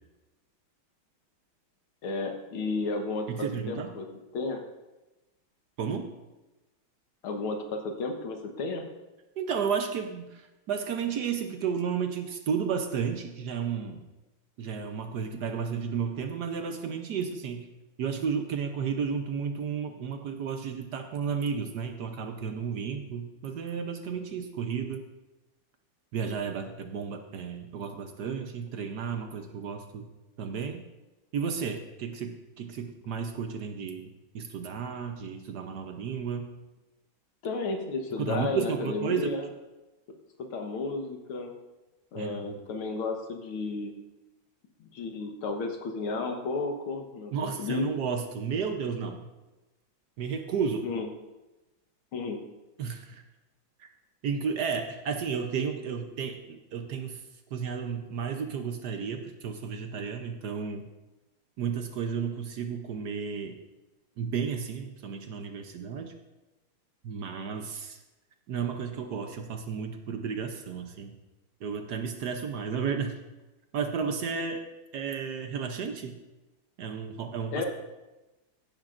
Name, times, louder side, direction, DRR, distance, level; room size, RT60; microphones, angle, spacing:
voice 1, 2.0-4.1 4.3-4.6 7.2-8.8 37.4-39.5 40.4-41.5 42.1-43.9 44.8-47.9 50.8-51.1 52.1-52.4 77.5-77.7, left 3 dB, 90° left, 3 dB, 2.1 m, -33 dB
voice 2, 3.3-3.9 5.8-6.1 9.4-14.0 14.6-17.7 18.0-25.1 26.1-30.1 30.4-30.8 31.3-34.1 34.3-36.5 38.2-39.3 42.2-42.5 47.3-49.2 50.2-50.9 52.8-53.2 53.8-53.9 54.2-57.2 57.5-60.8 61.6-63.6 64.2-66.1 67.0-68.0 68.5-71.1 71.6-73.2 73.7-74.6 74.9-76.2 76.8-77.6, right 6 dB, 65° right, 6 dB, 1.2 m, -32 dB
15.5 x 10.5 x 2.5 m, 1.1 s
omnidirectional pair, 2.2 m